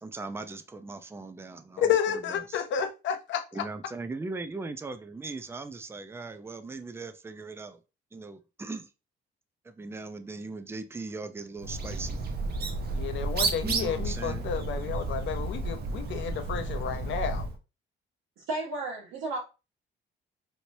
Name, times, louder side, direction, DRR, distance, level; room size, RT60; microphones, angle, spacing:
voice 1, 0.0-2.6 3.5-7.8 8.1-8.9 9.6-12.2 13.6-14.5, right 3 dB, 10° right, 0.4 m, -39 dB
voice 2, 1.8-3.7 12.9-17.5, left 8 dB, 70° left, 0.6 m, -31 dB
Bird, 11.6-17.6, right 3 dB, 55° right, 0.7 m, -32 dB
voice 3, 18.4-19.4, right 2 dB, 90° right, 1.3 m, -33 dB
3.1 x 2.9 x 2.6 m
cardioid pair, 90°, 20 cm